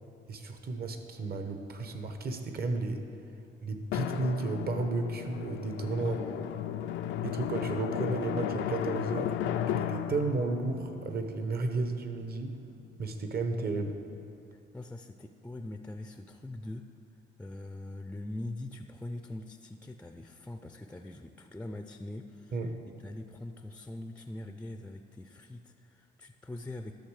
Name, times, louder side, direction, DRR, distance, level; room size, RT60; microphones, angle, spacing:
voice 1, 0.3-3.0 3.6-6.2 7.2-9.4 9.8-12.5 13.0-13.9 22.5-22.7, right 3 dB, 50° right, 6 dB, 1.0 m, -33 dB
Drum, 3.9-12.2, left 10 dB, 80° left, 0.4 m, -34 dB
voice 2, 5.9-6.7 14.5-16.9 17.4-22.7 23.0-26.9, left 1 dB, 5° left, 7 dB, 0.4 m, -43 dB
12.0 x 6.6 x 4.8 m, 2.6 s
cardioid pair, 90°, 20 cm